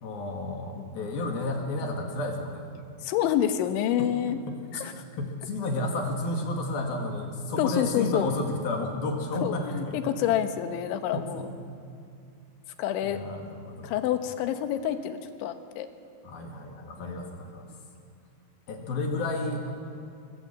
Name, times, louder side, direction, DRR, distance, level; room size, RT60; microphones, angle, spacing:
voice 1, 0.0-2.7 4.5-4.8 5.2-10.1 11.1-11.6 13.0-13.9 16.2-17.7 18.7-19.7, left 2 dB, 60° left, 2 dB, 3.7 m, -32 dB
voice 2, 3.0-4.4 4.8-4.9 7.6-8.3 9.4-11.4 12.8-13.2 13.8-15.9 17.0-17.4, left 10 dB, 90° left, 8 dB, 3.5 m, -28 dB
24.5 x 21.0 x 7.4 m, 2.5 s
omnidirectional pair, 5.2 m